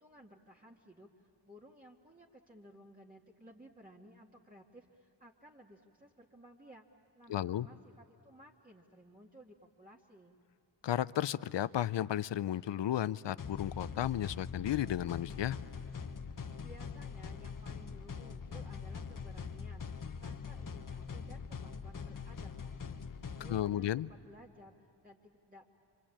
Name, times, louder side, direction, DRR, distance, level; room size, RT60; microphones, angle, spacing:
voice 1, 0.0-6.8 7.1-10.4 16.6-23.0 23.3-25.7, equal, 20° right, -4 dB, 2.3 m, -57 dB
voice 2, 7.3-7.7 10.8-15.6 23.5-24.1, left 12 dB, 80° left, 16 dB, 0.6 m, -33 dB
sound 1, 13.4-23.7, left 5 dB, 50° left, 1.3 m, -43 dB
26.0 x 26.0 x 8.7 m, 2.8 s
cardioid pair, 65°, 43 cm